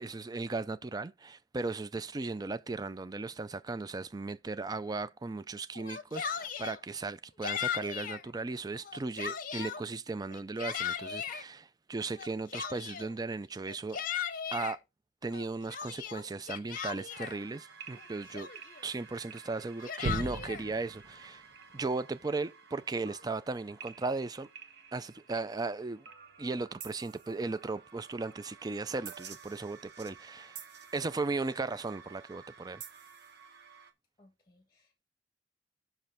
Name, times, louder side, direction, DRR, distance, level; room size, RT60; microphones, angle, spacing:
voice 1, 0.0-14.0 14.5-14.8 15.2-18.5 18.8-21.4 21.7-24.5 24.9-26.1 26.4-30.6 30.9-32.8, right 3 dB, 20° right, 0.4 m, -36 dB
Yell, 5.7-6.8 7.4-8.2 8.7-9.8 10.3-11.4 12.2-13.1 13.7-14.8 15.3-17.4 18.0-18.1 18.3-18.8 19.6-20.6, left 8 dB, 50° left, 0.8 m, -37 dB
sound 1, 17.1-33.9, right 3 dB, 65° right, 1.2 m, -46 dB
voice 2, 34.2-35.0, left 1 dB, 20° left, 1.6 m, -65 dB
6.1 x 5.3 x 5.7 m
head